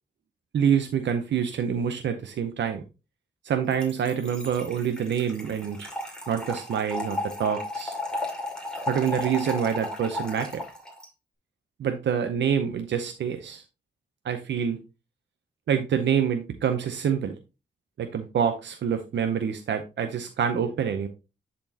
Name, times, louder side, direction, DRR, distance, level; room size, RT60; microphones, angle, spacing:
voice 1, 0.5-2.8 3.4-5.9 6.3-8.0 8.9-10.6 11.8-13.6 14.2-14.8 15.7-17.4 18.0-21.1, right 8 dB, 85° right, 6 dB, 0.7 m, -26 dB
Trickle dribble / Fill (with liquid), 3.7-11.1, left 2 dB, 5° left, 2.3 m, -34 dB
10.5 x 4.3 x 2.8 m, 0.29 s
wide cardioid pair, 95°, 18 cm